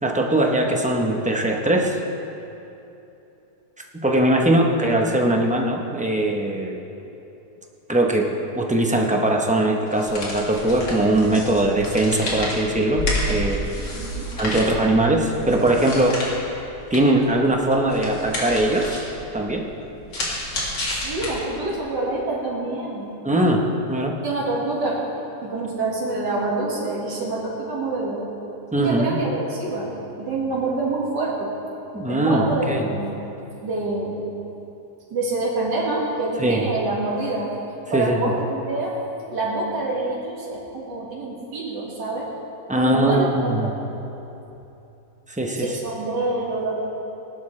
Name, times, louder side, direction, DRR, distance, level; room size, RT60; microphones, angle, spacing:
voice 1, 0.0-2.0 4.0-6.8 7.9-13.7 14.4-16.2 16.9-19.0 19.3-19.7 23.2-23.6 23.9-24.2 28.7-29.2 31.9-32.9 36.4-36.7 37.9-38.3 42.7-43.7 45.3-45.7, right 1 dB, 10° right, 0 dB, 0.5 m, -21 dB
sound 1, 9.9-21.7, left 1 dB, 85° left, 2.9 m, -30 dB
voice 2, 14.0-14.3 20.9-23.1 24.2-28.3 28.8-29.9 30.2-31.5 32.1-33.1 33.6-34.2 35.1-37.5 37.9-39.0 39.3-42.3 42.7-43.3 43.6-43.7 45.6-46.7, right 2 dB, 85° right, -5 dB, 2.6 m, -26 dB
19.0 x 11.0 x 3.3 m, 2.9 s
omnidirectional pair, 1.8 m